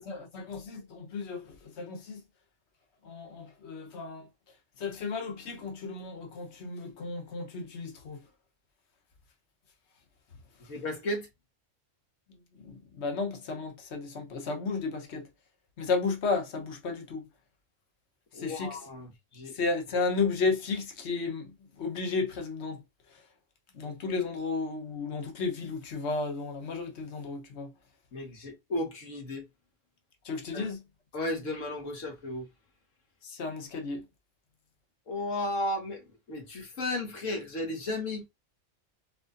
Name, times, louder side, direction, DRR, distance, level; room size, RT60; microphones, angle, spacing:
voice 1, 0.0-2.2 3.0-4.3 4.8-8.2 12.6-15.3 15.8-17.2 18.4-18.8 19.5-22.8 23.7-27.7 30.2-30.8 33.2-34.0, left 4 dB, 60° left, 1.3 m, -33 dB
voice 2, 10.6-11.3 18.3-19.6 28.1-29.5 30.5-30.7 31.1-32.5 35.1-38.3, left 1 dB, 85° left, 1.8 m, -34 dB
4.8 x 3.7 x 2.5 m
omnidirectional pair, 1.3 m